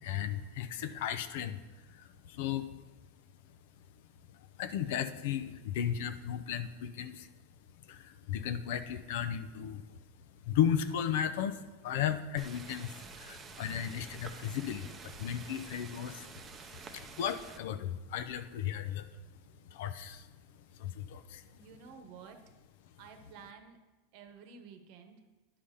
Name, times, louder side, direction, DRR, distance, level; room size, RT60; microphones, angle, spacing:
voice 1, 0.0-1.6 1.9-2.7 4.6-7.3 7.9-9.8 10.5-16.3 16.9-19.1 19.7-20.3 20.8-21.4, left 9 dB, 65° left, 10 dB, 0.6 m, -35 dB
sound 1, 12.4-17.6, right 5 dB, 20° right, 0.7 m, -49 dB
voice 2, 21.5-22.4 23.0-23.8 24.1-25.2, right 6 dB, 50° right, 6 dB, 1.1 m, -52 dB
10.5 x 5.0 x 5.6 m, 1.2 s
supercardioid pair, 150°, 0 cm